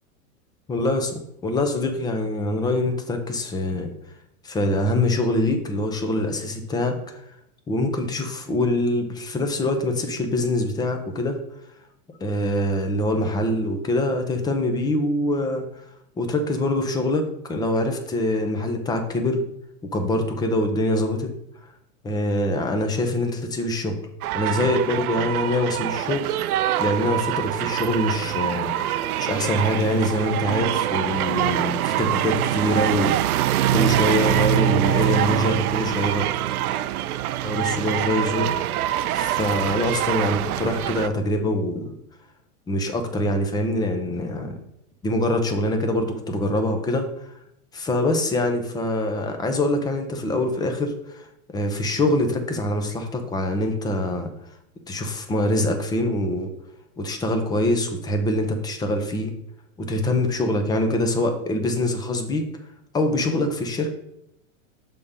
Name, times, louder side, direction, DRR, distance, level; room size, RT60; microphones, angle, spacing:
voice 1, 0.7-3.9 4.4-7.0 7.7-11.4 12.2-15.7 16.2-19.4 19.8-21.3 22.0-24.0 24.3-26.5 26.8-28.7 29.2-36.3 37.4-38.5 39.1-41.9 42.7-44.6 45.0-47.1 47.8-51.3 51.5-54.3 54.9-56.5 57.0-59.3 59.8-62.5 62.9-63.9, left 1 dB, 10° left, 5 dB, 0.6 m, -24 dB
sound 1, 24.2-41.1, right 13 dB, 85° right, 0.5 m, -24 dB
6.5 x 3.7 x 5.4 m, 0.79 s
hypercardioid pair, 140°, 43 cm